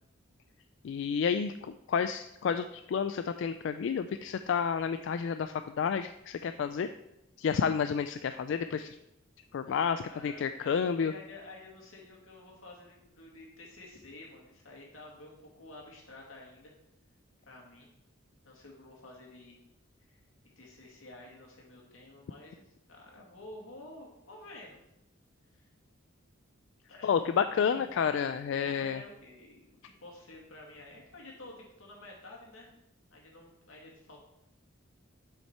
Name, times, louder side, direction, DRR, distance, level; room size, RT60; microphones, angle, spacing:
voice 1, 0.8-6.9 7.4-9.0 9.5-11.1 27.0-29.0, left 6 dB, 60° left, 10 dB, 0.3 m, -30 dB
voice 2, 9.6-16.7 17.5-17.9 18.4-19.6 20.6-24.8 25.5-25.7 26.9-28.0 28.5-32.7 33.1-34.2, left 2 dB, 85° left, -2 dB, 2.2 m, -51 dB
7.9 x 5.7 x 4.3 m, 0.89 s
head